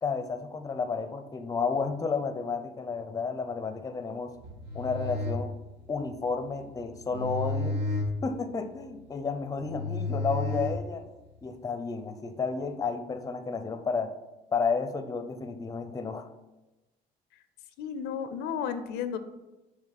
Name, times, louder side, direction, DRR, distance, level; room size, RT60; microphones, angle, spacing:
voice 1, 0.0-4.3 4.7-5.5 5.9-7.8 8.2-11.1 11.4-14.1 14.5-16.3, left 4 dB, 20° left, 8 dB, 0.6 m, -32 dB
sound 1, 4.3-11.3, left 2 dB, 70° right, 1.9 m, -34 dB
voice 2, 17.8-19.2, left 7 dB, 85° left, 11 dB, 0.6 m, -33 dB
7.2 x 3.2 x 5.8 m, 1.0 s
cardioid pair, 110°, 17 cm